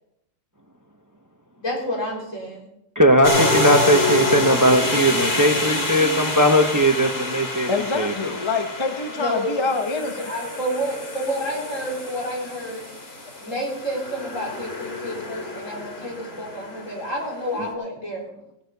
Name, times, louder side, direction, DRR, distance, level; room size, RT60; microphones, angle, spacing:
voice 1, 1.6-2.7 9.2-9.6 9.9-12.9 13.4-18.3, equal, 75° left, -2 dB, 4.2 m, -29 dB
voice 2, 3.0-7.7 7.9-8.3, equal, 15° right, 5 dB, 0.9 m, -18 dB
sound 1, 3.2-17.4, left 2 dB, 50° left, 2.5 m, -27 dB
voice 3, 7.7-10.3, left 4 dB, 25° left, 7 dB, 0.8 m, -26 dB
17.0 x 11.5 x 4.0 m, 0.80 s
omnidirectional pair, 1.3 m